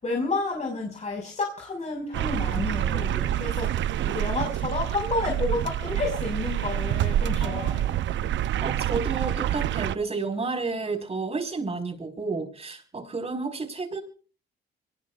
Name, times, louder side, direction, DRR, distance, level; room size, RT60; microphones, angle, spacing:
voice 1, 0.0-3.7 4.0-7.8, left 3 dB, 35° left, 1 dB, 5.4 m, -30 dB
sound 1, 2.1-10.0, right 11 dB, 70° right, 0.7 m, -27 dB
voice 2, 7.4-7.8 8.6-14.0, right 4 dB, 30° right, 6 dB, 4.8 m, -31 dB
25.5 x 20.0 x 2.4 m, 0.39 s
cardioid pair, 90°, 20 cm